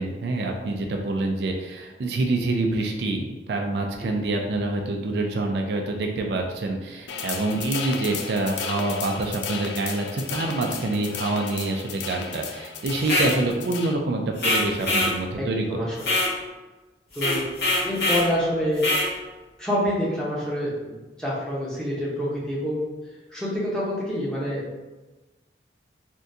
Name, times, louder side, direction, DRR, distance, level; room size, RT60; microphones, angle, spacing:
voice 1, 0.0-15.9, right 2 dB, 70° right, 2 dB, 0.3 m, -26 dB
sound 1, 7.1-13.9, left 6 dB, 85° left, 0.3 m, -34 dB
sound 2, 13.0-13.3 14.4-15.1 16.0-16.3 17.1-18.3 18.8-19.1, left 1 dB, 70° left, 0.7 m, -23 dB
voice 2, 15.3-16.1 17.1-17.4 17.8-18.8 19.6-22.8 23.3-24.6, equal, 5° left, -7 dB, 0.7 m, -27 dB
3.6 x 2.2 x 2.6 m, 1.2 s
head